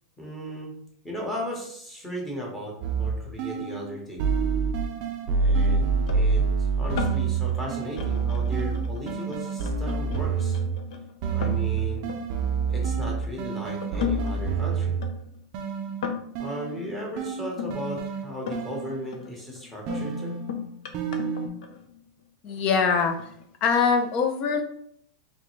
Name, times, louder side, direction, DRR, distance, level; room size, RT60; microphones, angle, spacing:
voice 1, 0.2-0.7 1.0-4.2 5.4-10.6 11.3-12.1 12.7-14.9 16.4-20.4, equal, 5° left, -2 dB, 1.1 m, -36 dB
sound 1, 2.8-3.9 4.2-10.9 11.2-15.2 15.5-19.3 19.9-21.5, right 5 dB, 40° right, 0.5 m, -27 dB
sound 2, 6.1-13.3 13.8-17.7 18.3-18.8 19.1-22.3 22.9-23.4, left 7 dB, 65° left, 0.7 m, -36 dB
voice 2, 22.4-23.3 23.6-24.6, left 5 dB, 30° left, 5 dB, 0.6 m, -23 dB
3.7 x 3.2 x 3.1 m, 0.68 s
supercardioid pair, 165°, 3 cm